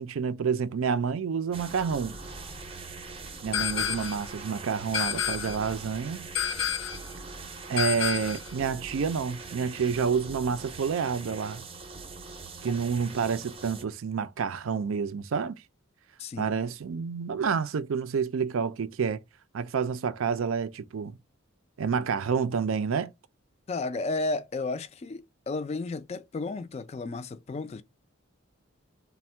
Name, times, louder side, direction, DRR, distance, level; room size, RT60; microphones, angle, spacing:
voice 1, 0.0-2.2 3.4-6.3 7.7-11.6 12.6-15.6 16.4-19.2 19.5-21.2 21.8-23.1, right 6 dB, 85° right, 0.4 m, -29 dB
sound 1, 1.5-13.8, right 3 dB, 30° right, 0.5 m, -42 dB
sound 2, 3.5-4.3 4.9-5.7 6.3-7.1 7.8-8.5, left 8 dB, 75° left, 0.6 m, -30 dB
voice 2, 16.2-16.6 23.7-27.8, left 3 dB, 30° left, 0.3 m, -33 dB
3.4 x 2.1 x 4.2 m
head